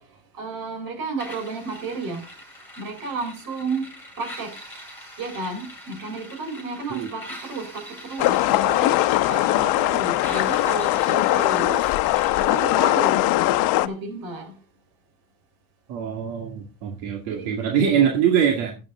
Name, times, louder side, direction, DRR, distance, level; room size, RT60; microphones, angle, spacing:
voice 1, 0.4-2.3 2.8-3.9 4.2-4.5 5.2-8.9 9.3-11.9 12.4-13.3 13.8-14.5 17.3-17.5 17.8-18.0, right 3 dB, 55° right, 4.4 m, -32 dB
sound 1, 1.2-13.2, equal, 5° left, 5.4 m, -42 dB
sound 2, 8.2-13.9, left 16 dB, 60° left, 0.9 m, -20 dB
voice 2, 15.9-18.8, right 8 dB, 80° right, 2.3 m, -23 dB
12.0 x 8.7 x 3.8 m
cardioid pair, 130°, 41 cm